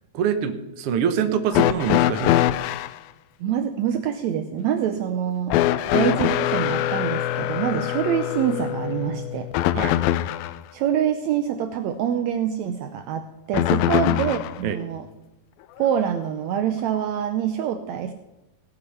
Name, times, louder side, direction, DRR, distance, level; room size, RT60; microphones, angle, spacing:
voice 1, 0.1-2.4 5.9-6.0 9.7-10.0 13.9-14.0 14.6-14.8, right 8 dB, 65° right, 8 dB, 1.4 m, -25 dB
sound 1, 1.5-3.0 5.5-10.6 13.5-14.6 15.8-15.9 17.0-17.1, left 13 dB, 85° left, 2.4 m, -23 dB
voice 2, 3.4-5.6 5.9-9.5 10.7-15.0 15.8-18.1, right 9 dB, 85° right, 8 dB, 1.5 m, -25 dB
17.5 x 8.5 x 5.6 m, 0.96 s
omnidirectional pair, 4.1 m